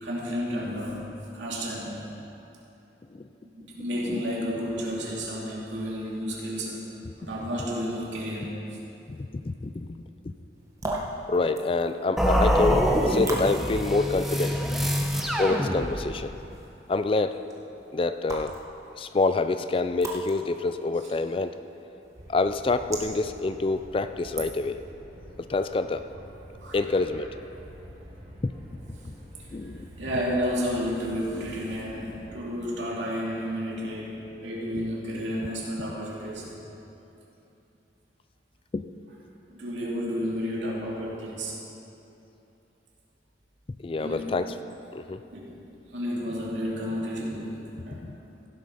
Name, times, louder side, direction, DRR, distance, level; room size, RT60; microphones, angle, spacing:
voice 1, 0.0-2.0 3.5-6.8 7.2-8.8 14.2-14.3 26.6-26.9 30.0-36.6 39.5-41.6 44.0-44.4 45.3-45.6 45.9-48.1, equal, 85° right, -4 dB, 2.7 m, -31 dB
voice 2, 9.1-9.9 10.2-10.3 11.3-14.6 15.4-16.3 16.9-17.4 17.9-18.6 19.0-21.6 22.3-24.8 25.4-26.1 26.7-27.3 28.4-28.5 29.0-29.1 29.5-29.9 38.7-38.8 43.8-44.5 44.9-45.2 47.9-48.2, left 3 dB, 30° left, 10 dB, 0.3 m, -27 dB
sound 1, 10.5-24.9, right 2 dB, 15° right, 1.2 m, -41 dB
sound 2, 12.2-16.3, equal, ahead, 0.8 m, -25 dB
sound 3, 22.1-32.3, equal, 45° right, 2.9 m, -47 dB
16.0 x 7.7 x 5.6 m, 2.9 s
head